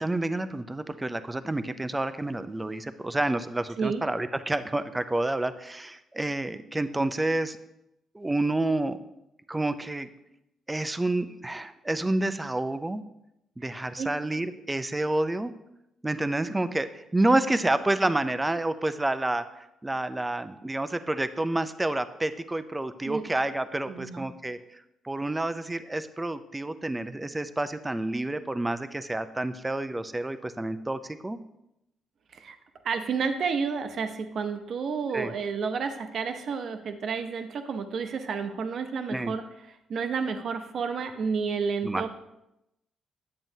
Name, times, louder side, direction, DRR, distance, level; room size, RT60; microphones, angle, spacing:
voice 1, 0.0-7.6 8.1-9.0 9.5-10.1 10.7-13.0 13.6-15.5 16.0-31.4 35.1-35.3 39.1-39.3 41.8-42.1, right 2 dB, 15° right, 11 dB, 0.5 m, -29 dB
voice 2, 23.9-24.3 32.3-32.6 32.8-39.4 39.9-42.1, right 5 dB, 60° right, 8 dB, 0.7 m, -30 dB
9.0 x 7.5 x 2.7 m, 0.86 s
cardioid pair, 90°, 0 cm